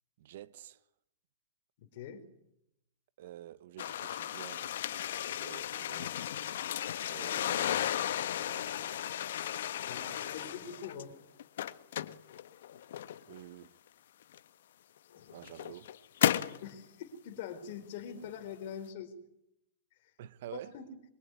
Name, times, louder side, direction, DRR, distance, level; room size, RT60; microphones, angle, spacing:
voice 1, 0.2-0.8 3.2-4.8 5.4-6.2 7.1-7.9 8.4-8.9 9.8-10.6 13.3-13.7 15.3-15.9 18.1-18.3 20.2-20.7, right 13 dB, 55° right, 1.0 m, -49 dB
voice 2, 1.8-2.2 9.9-11.2 15.2-15.3 16.6-19.1 20.7-20.9, left 8 dB, 45° left, 4.2 m, -43 dB
sound 1, 3.8-11.0 11.4-13.4 14.3-14.4 15.1-16.6, left 11 dB, 65° left, 1.3 m, -34 dB
25.0 x 23.5 x 9.7 m
hypercardioid pair, 160°, 0 cm